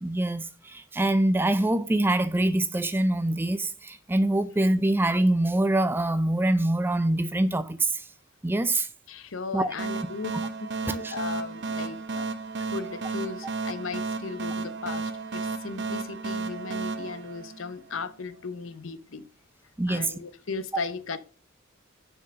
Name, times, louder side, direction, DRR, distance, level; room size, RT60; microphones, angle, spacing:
voice 1, 0.0-8.0 8.4-8.9 9.5-9.7 10.9-11.2 19.8-20.1, right 1 dB, 10° right, 0.4 m, -24 dB
voice 2, 9.1-10.3 10.8-12.3 12.7-19.2 19.9-21.2, left 4 dB, 65° left, 0.7 m, -36 dB
sound 1, 9.8-18.1, right 4 dB, 55° right, 0.7 m, -33 dB
6.2 x 4.6 x 6.5 m
head